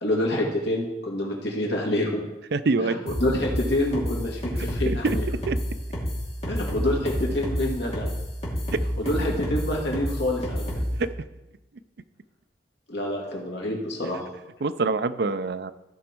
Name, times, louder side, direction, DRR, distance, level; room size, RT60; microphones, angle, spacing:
voice 1, 0.0-2.2 2.8-5.2 6.5-8.1 9.0-10.7 12.9-14.3, left 1 dB, 70° left, -2 dB, 2.3 m, -27 dB
voice 2, 2.5-3.0 4.9-5.2 5.5-5.6 9.2-9.3 11.0-11.1 14.6-15.7, right 3 dB, 60° right, 12 dB, 0.5 m, -25 dB
sound 1, 3.1-11.0, equal, 35° left, 2.6 m, -28 dB
14.5 x 5.2 x 4.5 m, 1.0 s
head